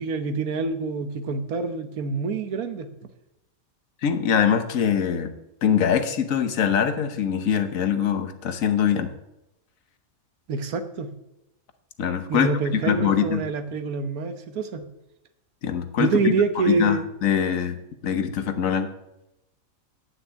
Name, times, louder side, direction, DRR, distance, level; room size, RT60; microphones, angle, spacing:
voice 1, 0.0-2.9 10.5-11.1 12.3-14.9 16.0-17.1, right 4 dB, 85° right, 9 dB, 1.4 m, -26 dB
voice 2, 4.0-5.3 5.6-9.1 12.0-13.4 15.6-16.1 16.7-17.8 18.0-18.9, left 8 dB, 70° left, 9 dB, 1.3 m, -23 dB
9.9 x 6.1 x 8.2 m, 0.89 s
omnidirectional pair, 1.5 m